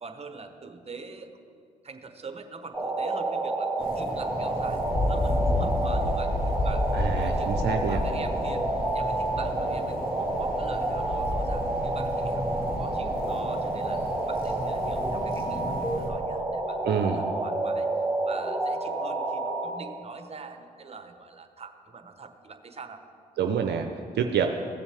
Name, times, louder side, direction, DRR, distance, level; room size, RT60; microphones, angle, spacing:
voice 1, 0.0-1.5 1.8-7.5 7.9-8.6 8.9-12.4 12.8-14.0 14.3-16.8 17.1-23.0, right 4 dB, 35° right, 7 dB, 1.0 m, -44 dB
sound 1, 2.7-19.7, right 2 dB, ahead, 2.3 m, -29 dB
sound 2, 3.8-16.1, left 1 dB, 55° left, 2.1 m, -32 dB
voice 2, 6.9-8.0 16.8-17.3 23.4-24.5, right 7 dB, 65° right, 5 dB, 0.6 m, -27 dB
16.0 x 7.0 x 3.5 m, 2.3 s
hypercardioid pair, 50°, 19 cm